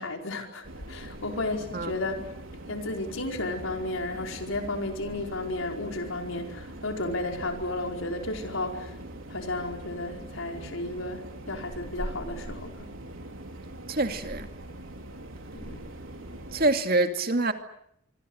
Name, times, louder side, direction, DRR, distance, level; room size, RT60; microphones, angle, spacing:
voice 1, 0.0-2.3 2.7-8.9 9.3-12.9 15.5-15.8, left 2 dB, 90° left, 3 dB, 4.9 m, -33 dB
sound 1, 0.6-16.7, right 1 dB, 85° right, 4.0 m, -42 dB
voice 2, 13.9-14.5 16.5-17.5, right 2 dB, 50° right, 7 dB, 2.5 m, -25 dB
25.5 x 25.0 x 8.1 m, 0.73 s
head